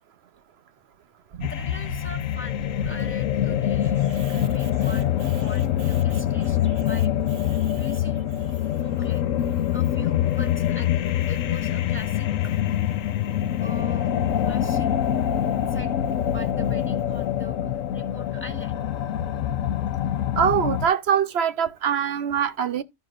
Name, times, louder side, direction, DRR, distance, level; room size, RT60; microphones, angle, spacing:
sound 1, 1.4-20.9, left 11 dB, 90° left, 1.1 m, -25 dB
voice 1, 1.5-7.2 7.7-8.2 8.8-9.2 9.7-12.3 13.6-14.1 14.4-14.9 15.7-15.9 16.3-18.8, equal, 10° left, 1.5 m, -42 dB
voice 2, 20.4-22.8, right 8 dB, 60° right, 0.9 m, -23 dB
14.0 x 5.9 x 2.5 m
omnidirectional pair, 1.3 m